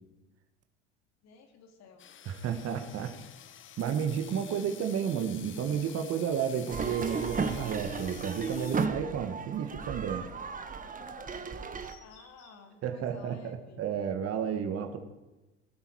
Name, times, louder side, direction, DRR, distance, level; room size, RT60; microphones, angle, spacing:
voice 1, 1.2-2.1 12.0-13.9, left 5 dB, 50° left, 5 dB, 2.8 m, -53 dB
sound 1, 2.0-8.9, left 10 dB, 35° left, 1.0 m, -49 dB
voice 2, 2.3-3.1 3.8-10.3 12.8-15.0, right 8 dB, 45° right, 6 dB, 1.7 m, -32 dB
sound 2, 6.7-11.9, right 5 dB, 25° right, 1.5 m, -35 dB
sound 3, 8.0-12.8, left 4 dB, 70° left, 5.9 m, -61 dB
17.5 x 12.5 x 4.8 m, 1.1 s
hypercardioid pair, 75°, 33 cm